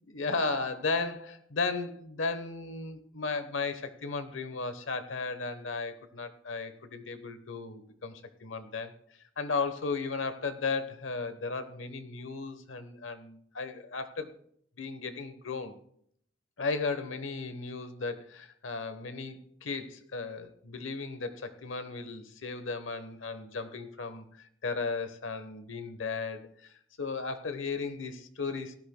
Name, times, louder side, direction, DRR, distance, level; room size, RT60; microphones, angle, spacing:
voice 1, 0.1-8.9 9.4-14.3 14.8-15.8 16.6-28.8, left 4 dB, 90° left, 11 dB, 1.0 m, -35 dB
18.0 x 13.5 x 2.2 m, 0.65 s
head